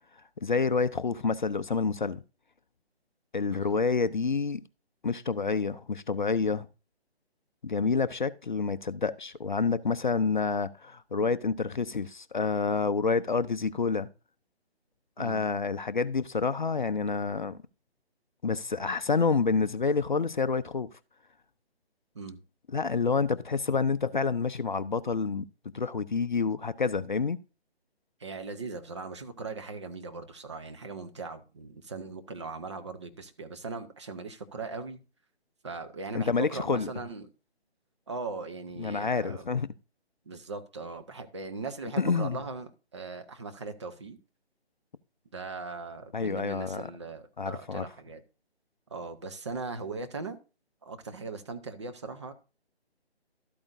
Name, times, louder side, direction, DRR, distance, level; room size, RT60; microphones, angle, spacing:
voice 1, 0.4-2.2 3.3-4.6 5.0-6.7 7.6-14.1 15.2-17.6 18.4-20.9 22.7-25.5 25.7-27.4 36.1-36.9 38.8-39.7 42.0-42.4 46.1-46.9 47.4-47.9, left 4 dB, 50° left, 0.5 m, -28 dB
voice 2, 28.2-35.0 35.6-37.3 38.1-39.4 40.3-44.2 45.3-48.2 48.9-50.4 50.8-52.3, right 4 dB, 25° right, 0.8 m, -39 dB
12.5 x 8.7 x 2.5 m
figure-of-eight pair, 150°, 32 cm